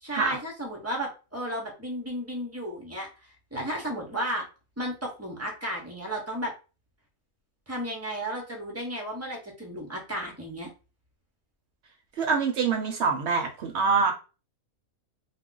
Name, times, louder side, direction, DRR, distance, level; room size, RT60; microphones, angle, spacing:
voice 1, 0.0-3.1 3.5-4.4 4.8-6.5 7.7-10.7, equal, 20° right, 0 dB, 0.4 m, -33 dB
voice 2, 12.2-14.1, right 5 dB, 60° right, 3 dB, 0.8 m, -25 dB
2.4 x 2.2 x 3.7 m, 0.32 s
omnidirectional pair, 1.5 m